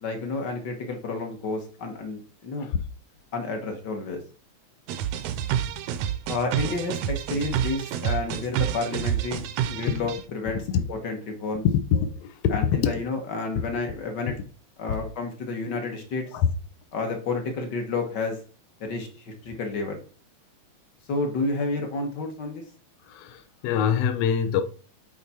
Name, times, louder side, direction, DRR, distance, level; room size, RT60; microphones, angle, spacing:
voice 1, 0.0-2.7 3.3-4.2 6.3-11.6 12.5-14.3 14.8-16.2 16.9-18.4 18.8-20.0 21.1-22.6, left 3 dB, 55° left, 1.3 m, -30 dB
sound 1, 4.9-10.2, right 10 dB, 75° right, 1.6 m, -28 dB
voice 2, 11.6-12.8 14.9-15.0 16.3-16.5 23.1-24.6, left 8 dB, 70° left, 1.6 m, -24 dB
8.5 x 4.1 x 4.2 m
omnidirectional pair, 3.3 m